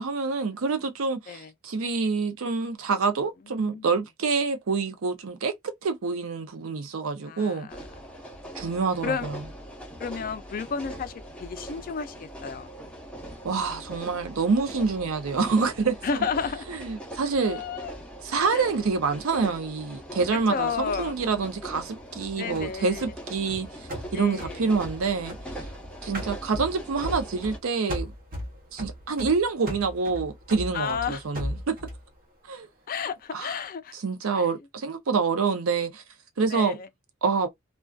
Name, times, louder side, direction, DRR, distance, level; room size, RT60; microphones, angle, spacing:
voice 1, 0.0-7.7 8.5-9.3 13.4-16.2 16.8-17.6 18.2-23.7 24.1-25.4 26.0-28.1 28.7-31.8 32.5-32.7 33.3-33.5 34.0-36.0 36.4-36.8 37.2-37.5, right 4 dB, 85° right, 0.5 m, -27 dB
voice 2, 3.5-3.9 7.2-7.8 9.0-9.3 10.0-11.1 11.4-12.7 16.0-16.7 17.4-18.1 18.5-18.6 20.5-21.2 22.3-23.1 24.1-24.7 30.7-31.2 32.9-34.0 34.3-34.5 36.5-36.9, left 6 dB, 45° left, 0.4 m, -32 dB
sound 1, 7.7-27.6, right 1 dB, 5° left, 0.7 m, -41 dB
sound 2, 22.5-25.8 26.1-27.6 27.9-32.0, equal, 45° right, 0.9 m, -37 dB
2.5 x 2.2 x 2.3 m
head